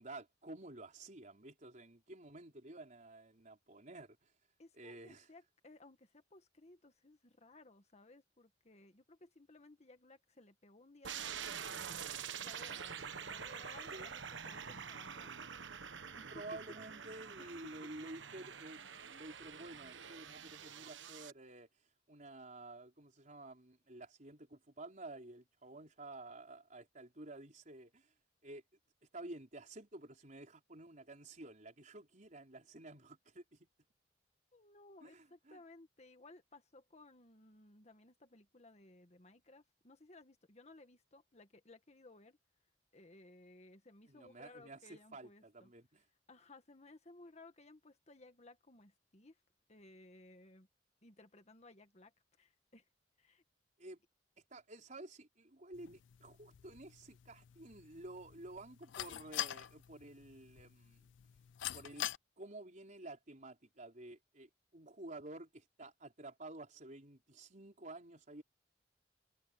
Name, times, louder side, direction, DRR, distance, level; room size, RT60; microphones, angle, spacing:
voice 1, 0.0-4.3 4.8-5.3 13.9-14.1 16.3-21.7 22.1-28.1 28.4-28.6 29.1-33.7 35.0-35.6 44.1-46.0 53.8-54.0 54.5-61.1 61.7-62.1 62.4-68.4, right 2 dB, 45° right, 4.4 m, -51 dB
voice 2, 4.6-13.0 13.3-15.5 16.2-16.6 17.1-17.7 34.5-42.4 42.9-45.7 46.3-49.4 49.7-50.7 51.0-52.1 52.4-52.9 53.2-53.4, left 2 dB, 35° left, 1.7 m, -60 dB
sound 1, 11.0-21.3, right 7 dB, 85° right, 1.2 m, -46 dB
sound 2, 55.7-62.2, left 13 dB, 80° left, 0.4 m, -46 dB
head